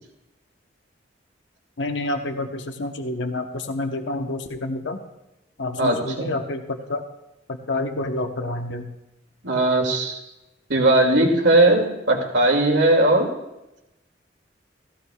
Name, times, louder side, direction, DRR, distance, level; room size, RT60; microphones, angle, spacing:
voice 1, 1.8-5.0 5.6-7.0 7.5-8.9, left 2 dB, 80° left, 5 dB, 1.0 m, -28 dB
voice 2, 5.8-6.3 9.4-10.2 10.7-13.3, right 2 dB, 70° right, 1 dB, 2.4 m, -18 dB
17.0 x 15.5 x 2.4 m, 0.94 s
head